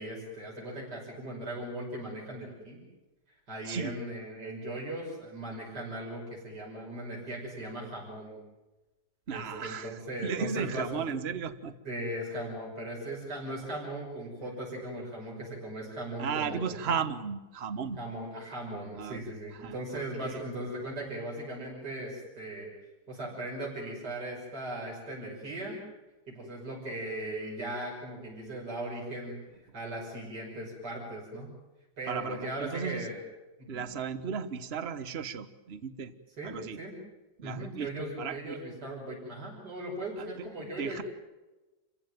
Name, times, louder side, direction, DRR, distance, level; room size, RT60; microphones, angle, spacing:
voice 1, 0.0-2.8 3.5-8.4 9.3-11.1 11.8-16.9 18.0-22.7 23.1-25.8 26.3-29.3 29.7-31.5 32.0-33.2 33.6-33.8 36.4-36.9 37.4-41.0, right 1 dB, 60° right, -2 dB, 6.6 m, -38 dB
voice 2, 9.3-11.7 16.2-18.0 18.9-20.4 32.1-33.1 33.7-36.1 36.4-36.8 37.4-37.9 38.2-38.6 40.2-40.3 40.8-41.0, right 6 dB, 40° right, 12 dB, 1.3 m, -35 dB
28.5 x 16.0 x 9.2 m, 1.1 s
omnidirectional pair, 2.0 m